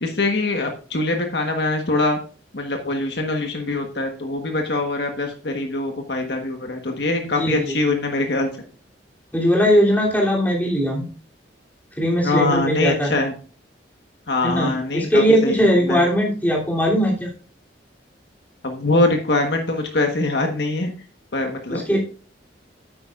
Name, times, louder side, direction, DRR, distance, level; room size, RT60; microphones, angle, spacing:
voice 1, 0.0-2.2 2.5-8.5 12.2-13.3 14.3-16.0 18.6-20.9 21.3-21.8, left 2 dB, 70° left, 3 dB, 1.4 m, -23 dB
voice 2, 7.2-7.8 9.3-11.1 12.0-13.2 14.4-17.3 21.7-22.0, equal, 10° left, -3 dB, 3.0 m, -19 dB
9.6 x 8.7 x 2.5 m, 0.38 s
head